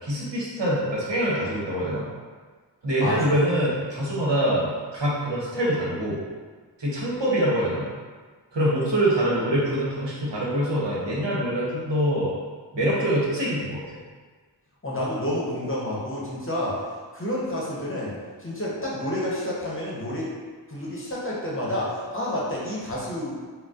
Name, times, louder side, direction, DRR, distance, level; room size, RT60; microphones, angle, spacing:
voice 1, 0.0-2.1 2.8-6.2 6.8-7.9 8.5-12.3 12.7-13.8, right 1 dB, 75° right, -6 dB, 1.0 m, -24 dB
voice 2, 3.0-3.3 14.8-16.8 17.1-20.3 20.7-23.4, left 1 dB, 30° left, -6 dB, 0.9 m, -29 dB
3.9 x 2.1 x 2.4 m, 1.5 s
cardioid pair, 40°, 43 cm